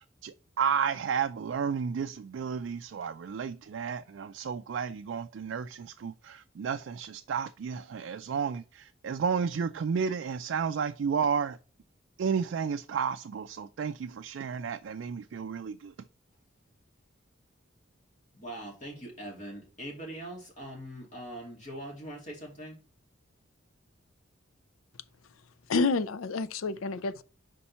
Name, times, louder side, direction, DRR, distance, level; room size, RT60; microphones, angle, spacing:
voice 1, 0.2-11.6 12.2-15.9, right 6 dB, 65° right, 0.3 m, -32 dB
voice 2, 18.4-22.8, right 1 dB, 35° left, 2.7 m, -42 dB
voice 3, 25.7-27.2, left 4 dB, 85° left, 0.5 m, -28 dB
5.2 x 4.3 x 5.5 m
head